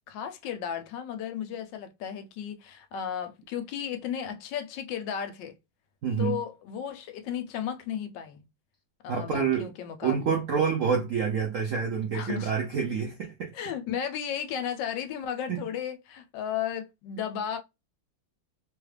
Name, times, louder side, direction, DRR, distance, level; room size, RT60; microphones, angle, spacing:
voice 1, 0.1-5.5 6.2-8.5 9.0-10.4 12.1-12.5 13.5-17.6, left 8 dB, 75° left, 1.2 m, -34 dB
voice 2, 6.0-6.4 9.1-9.7 10.0-13.5 15.5-15.6, right 6 dB, 80° right, 0.7 m, -27 dB
3.3 x 2.3 x 3.2 m
omnidirectional pair, 2.2 m